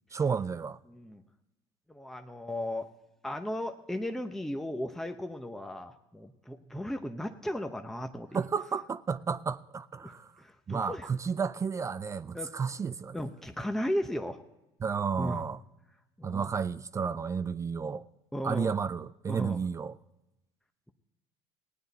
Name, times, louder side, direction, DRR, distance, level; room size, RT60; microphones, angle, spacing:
voice 1, 0.1-0.8 8.3-10.3 10.7-13.2 14.8-15.6 16.2-18.1 18.4-19.9, right 6 dB, 25° right, 0.4 m, -32 dB
voice 2, 0.9-1.2 1.9-2.9 3.2-8.4 10.0-11.1 12.3-12.5 13.1-14.4 15.2-15.4 16.2-16.4 18.3-18.7 19.3-19.6, equal, 5° left, 0.8 m, -36 dB
17.0 x 9.7 x 4.1 m
supercardioid pair, 100°, 12 cm